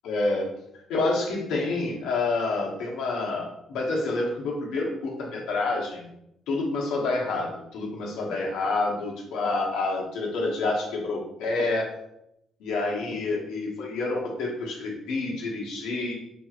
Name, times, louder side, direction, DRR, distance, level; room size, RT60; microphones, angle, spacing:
voice 1, 0.0-0.5 0.9-6.1 6.5-11.9 12.6-16.1, left 3 dB, 90° left, -1 dB, 1.0 m, -28 dB
5.0 x 3.0 x 2.4 m, 0.79 s
cardioid pair, 150°, 0 cm